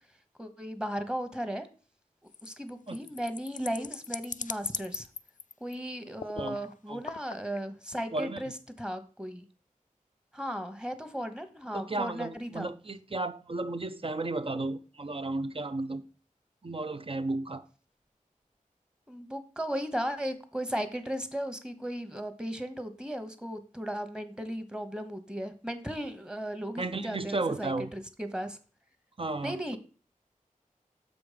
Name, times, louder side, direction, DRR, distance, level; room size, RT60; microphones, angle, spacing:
voice 1, 0.4-1.7 2.4-5.1 5.6-8.5 8.8-9.5 10.3-12.7 19.1-28.6 29.4-29.8, equal, 5° right, 1.1 m, -36 dB
sound 1, 2.3-5.8 6.2-6.7 7.0-7.6, left 6 dB, 70° left, 0.4 m, -39 dB
voice 2, 8.1-8.4 11.7-16.0 16.6-17.7 26.8-27.9 29.2-29.8, right 2 dB, 40° right, 0.6 m, -34 dB
7.0 x 5.2 x 5.0 m
wide cardioid pair, 50°, 14 cm